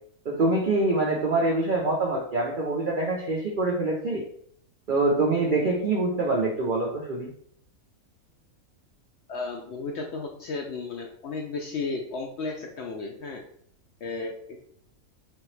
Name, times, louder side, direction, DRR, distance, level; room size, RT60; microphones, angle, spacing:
voice 1, 0.3-4.2 4.9-7.3, right 2 dB, 65° right, -2 dB, 0.5 m, -25 dB
voice 2, 9.3-13.4 14.0-14.6, left 3 dB, 65° left, 1 dB, 0.7 m, -34 dB
3.5 x 2.8 x 3.1 m, 0.64 s
omnidirectional pair, 1.6 m